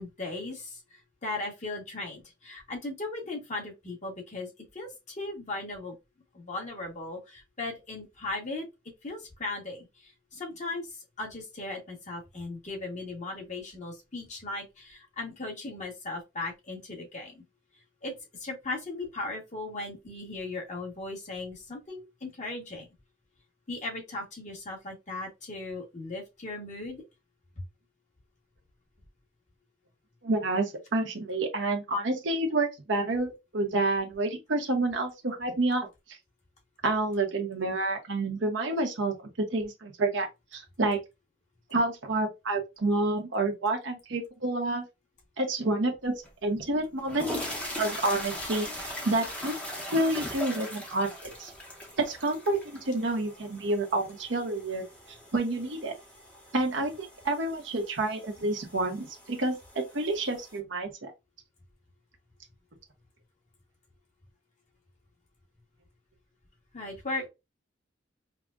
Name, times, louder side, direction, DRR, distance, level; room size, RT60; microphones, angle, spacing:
voice 1, 0.0-6.0 6.3-8.7 9.0-17.4 18.0-22.9 23.7-27.0 66.7-67.3, left 2 dB, 40° left, 1.3 m, -37 dB
voice 2, 30.2-36.2 36.8-40.3 40.5-41.0 41.7-44.8 45.4-46.1 46.4-47.3 47.8-49.5 49.9-51.5 52.0-54.8 55.3-56.0 56.5-61.1, right 2 dB, 70° right, 0.9 m, -29 dB
sound 1, 46.2-46.3 46.9-60.6, equal, 5° left, 0.8 m, -40 dB
4.8 x 2.1 x 2.4 m
head